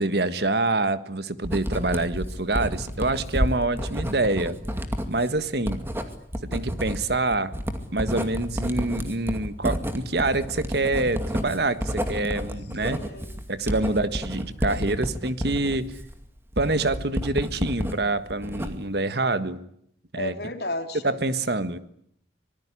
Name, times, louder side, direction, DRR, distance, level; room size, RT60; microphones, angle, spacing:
voice 1, 0.0-4.6 5.1-5.8 6.5-7.5 7.9-13.0 13.5-15.9 16.6-19.6 20.1-20.3 21.0-21.8, right 2 dB, 60° right, 12 dB, 1.5 m, -26 dB
Writing, 1.4-18.0 18.3-19.0, equal, 15° right, 2.4 m, -30 dB
voice 2, 3.5-4.0 12.9-13.5 13.8-14.3 20.2-21.2, left 2 dB, 60° left, 5 dB, 3.6 m, -35 dB
25.5 x 19.0 x 9.9 m, 0.70 s
head